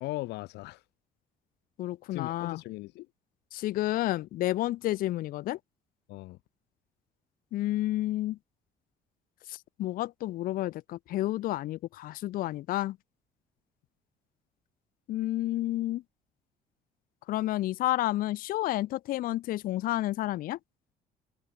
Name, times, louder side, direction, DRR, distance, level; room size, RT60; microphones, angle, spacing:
voice 1, 0.0-0.8 2.1-3.1 6.1-6.4, left 19 dB, 85° left, 0.9 m, -38 dB
voice 2, 1.8-2.6 3.5-5.6 7.5-8.4 9.5-13.0 15.1-16.0 17.3-20.6, left 15 dB, 55° left, 0.4 m, -30 dB
cardioid pair, 110°, 17 cm